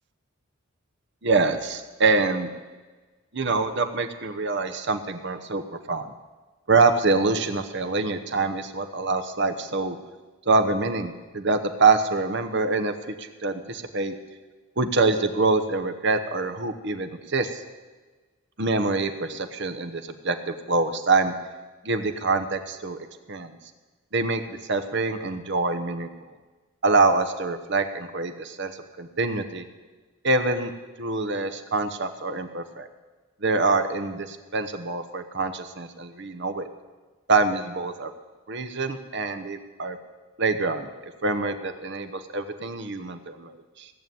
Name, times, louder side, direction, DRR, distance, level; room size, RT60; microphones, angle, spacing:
voice 1, 1.2-2.5 3.3-6.1 6.7-10.0 10.5-14.1 14.8-17.6 18.6-21.3 21.8-23.0 23.3-23.6 24.1-26.1 26.8-28.7 29.0-29.6 30.2-30.7 31.0-32.9 33.4-36.7 37.3-38.1 38.5-40.0 40.4-40.9 41.2-43.9, right 3 dB, 55° right, 8 dB, 1.0 m, -25 dB
17.0 x 7.1 x 9.3 m, 1.3 s
head